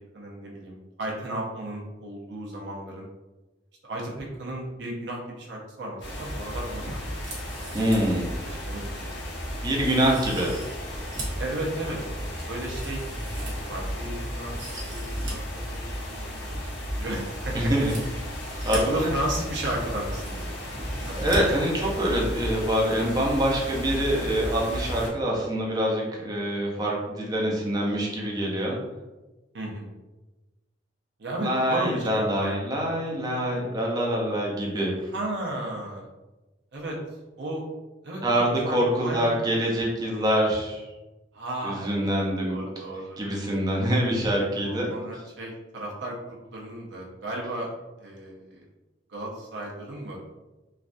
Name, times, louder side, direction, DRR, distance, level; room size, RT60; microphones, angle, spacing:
voice 1, 0.1-3.1 3.8-6.8 8.4-9.1 11.4-12.2 12.5-14.6 14.9-17.7 18.7-21.5 29.5-29.9 31.2-32.5 35.1-36.1 36.7-37.0 37.4-37.6 38.0-39.3 41.3-43.2 44.6-47.7 48.0-48.6 49.1-50.2, right 1 dB, 65° right, -2 dB, 0.7 m, -34 dB
sound 1, 6.0-25.1, equal, 70° left, 0.9 m, -34 dB
sound 2, 7.2-8.2 8.6-8.7 9.2-9.3 9.8-11.4 11.9-14.0 14.4-15.3 15.6-15.7 17.7-18.8 19.6-19.7 19.9-20.6 20.9-21.4 21.7-21.8, right 2 dB, 80° right, 1.0 m, -41 dB
voice 2, 7.7-8.3 9.6-10.6 17.5-18.3 18.6-19.1 21.1-28.8 31.4-34.9 38.2-40.8 41.6-42.6 43.2-44.9, equal, 20° right, -3 dB, 0.6 m, -25 dB
3.2 x 2.4 x 2.5 m, 1.1 s
head